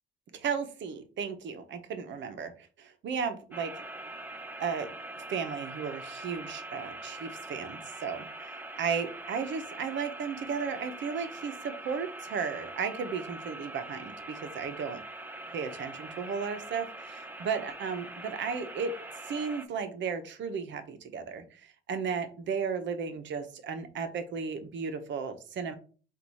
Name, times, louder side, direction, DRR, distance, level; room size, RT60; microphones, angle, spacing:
voice 1, 0.3-3.8 4.6-4.9 5.1-15.0 15.5-18.9 19.2-25.7, right 6 dB, 65° right, 8 dB, 0.9 m, -35 dB
sound 1, 3.5-19.6, right 2 dB, 10° right, 0.6 m, -43 dB
4.0 x 2.6 x 4.7 m, 0.38 s
cardioid pair, 90°, 20 cm